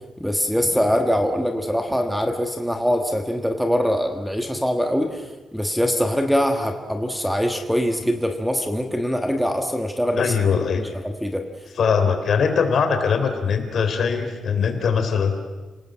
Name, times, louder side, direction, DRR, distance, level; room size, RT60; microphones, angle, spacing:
voice 1, 0.2-10.3 10.8-11.4, equal, ahead, 5 dB, 1.4 m, -23 dB
voice 2, 10.2-10.9 11.8-15.3, left 6 dB, 50° left, 7 dB, 3.4 m, -21 dB
30.0 x 19.0 x 7.5 m, 1.2 s
wide cardioid pair, 155°, 0 cm